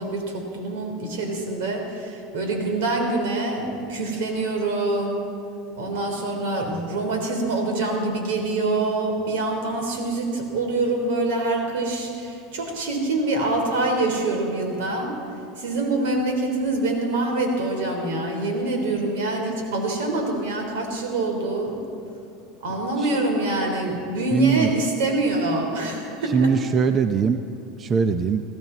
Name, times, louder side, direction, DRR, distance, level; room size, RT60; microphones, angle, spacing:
voice 1, 0.0-5.4 5.8-15.1 15.6-21.8 22.6-26.6, right 2 dB, 85° right, 2 dB, 3.8 m, -25 dB
voice 2, 22.7-23.1 24.3-24.7 26.2-27.4 27.8-28.4, right 6 dB, 30° right, 9 dB, 0.5 m, -22 dB
21.0 x 15.5 x 4.1 m, 2.6 s
supercardioid pair, 135°, 0 cm